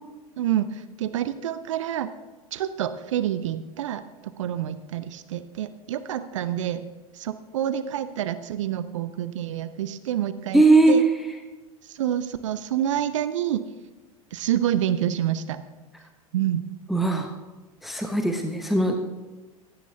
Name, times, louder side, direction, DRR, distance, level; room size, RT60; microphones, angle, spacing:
voice 1, 0.4-2.1 2.5-4.0 4.4-6.9 7.1-11.0 11.9-13.6 14.3-15.6 16.3-16.6, right 11 dB, 60° right, 12 dB, 0.6 m, -27 dB
voice 2, 10.5-11.1 16.9-17.3 17.8-19.0, right 2 dB, ahead, 5 dB, 0.8 m, -19 dB
16.0 x 10.0 x 2.7 m, 1.2 s
figure-of-eight pair, 85°, 19 cm